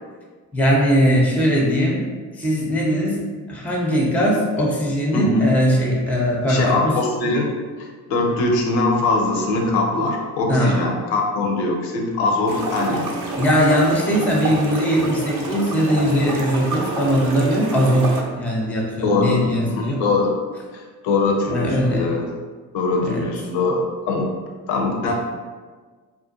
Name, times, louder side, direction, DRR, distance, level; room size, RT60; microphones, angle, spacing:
voice 1, 0.5-2.0 2.4-3.2 3.5-7.0 10.5-10.8 13.4-20.0 21.5-22.1 23.0-23.3 25.1-25.2, equal, 5° left, -2 dB, 0.5 m, -20 dB
voice 2, 5.1-5.4 6.5-7.5 7.8-13.1 19.0-19.4 19.7-20.3 20.7-22.2 22.7-24.3 24.7-25.1, left 3 dB, 75° left, 1 dB, 0.6 m, -22 dB
sound 1, 12.5-18.2, right 2 dB, 40° right, 0.6 m, -28 dB
2.4 x 2.2 x 2.5 m, 1.5 s
hypercardioid pair, 50°, 48 cm